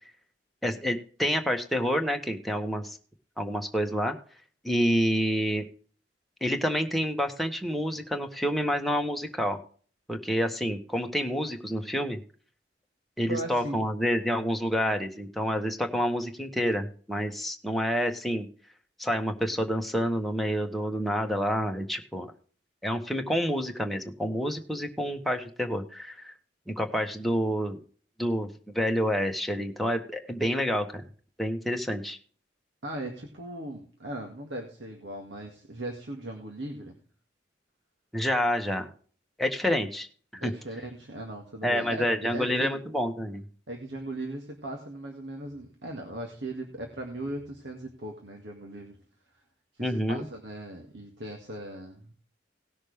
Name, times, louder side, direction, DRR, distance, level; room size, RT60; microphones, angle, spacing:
voice 1, 0.6-3.0 3.4-4.2 4.6-5.6 6.4-9.6 10.1-12.2 13.2-18.5 19.0-22.3 22.8-26.3 26.7-27.8 28.2-31.0 31.4-32.2 38.1-38.9 39.4-40.1 40.3-40.5 41.6-43.4 49.8-50.3, equal, ahead, 2 dB, 1.4 m, -28 dB
voice 2, 13.3-13.9 32.8-37.0 40.4-42.7 43.7-49.0 49.7-52.1, right 1 dB, 85° right, 2 dB, 2.1 m, -38 dB
18.5 x 6.4 x 3.4 m, 0.43 s
head